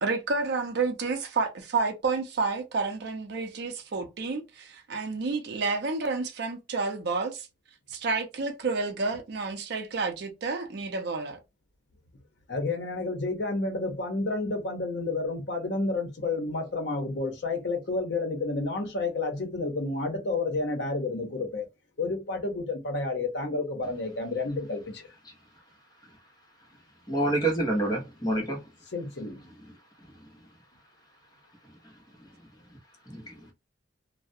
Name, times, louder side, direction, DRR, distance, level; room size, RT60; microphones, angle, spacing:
voice 1, 0.0-7.5 7.9-11.4, right 4 dB, 60° right, 0.5 m, -30 dB
voice 2, 12.5-21.7 22.0-25.1 28.9-29.5, left 3 dB, 60° left, 0.7 m, -30 dB
voice 3, 27.1-28.6 33.1-33.5, right 1 dB, 20° left, 0.8 m, -27 dB
2.3 x 2.0 x 2.6 m
head